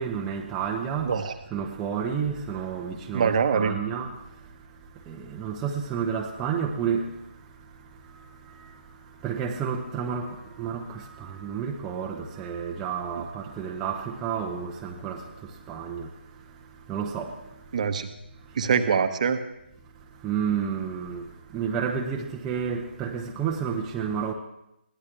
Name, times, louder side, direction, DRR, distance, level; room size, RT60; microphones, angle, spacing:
voice 1, 0.0-1.1 1.5-4.1 5.1-7.1 9.2-15.2 15.7-16.1 16.9-17.3 20.2-21.2 21.5-24.3, right 7 dB, 10° right, 1.0 m, -30 dB
voice 2, 1.0-1.3 3.1-3.8 17.7-18.1 18.6-19.4, right 6 dB, 40° right, 1.2 m, -24 dB
22.0 x 17.0 x 3.4 m
figure-of-eight pair, 150°, 6 cm